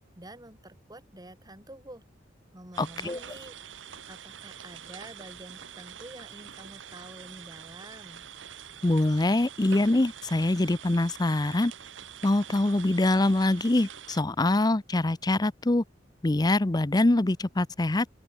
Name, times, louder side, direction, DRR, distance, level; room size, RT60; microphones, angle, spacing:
voice 1, 0.2-2.0 2.5-3.5 4.1-8.2, right 1 dB, 20° right, 3.8 m, -48 dB
sound 1, 2.7-14.2, right 9 dB, 80° right, 1.4 m, -45 dB
voice 2, 2.8-3.2 8.8-11.7 12.2-15.8 16.2-18.1, left 2 dB, 20° left, 0.6 m, -24 dB
open air
head